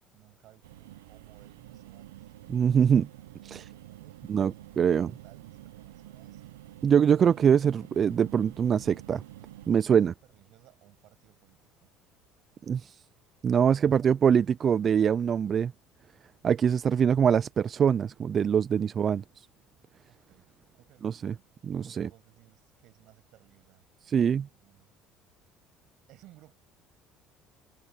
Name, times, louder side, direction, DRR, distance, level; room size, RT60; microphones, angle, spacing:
voice 1, 0.1-2.3 3.5-6.6 9.9-11.9 20.1-21.5 21.9-24.9 26.1-26.5, right 17 dB, 65° right, 7.9 m, -59 dB
sound 1, 0.6-9.7, right 14 dB, 90° right, 0.9 m, -48 dB
voice 2, 2.5-3.1 3.4-3.6 4.3-5.1 6.8-9.2 9.7-10.1 12.7-13.0 13.4-15.7 16.4-19.2 21.0-21.3 21.6-22.1 24.1-24.4, right 7 dB, 45° right, 0.5 m, -23 dB
hypercardioid pair, 75°, 0 cm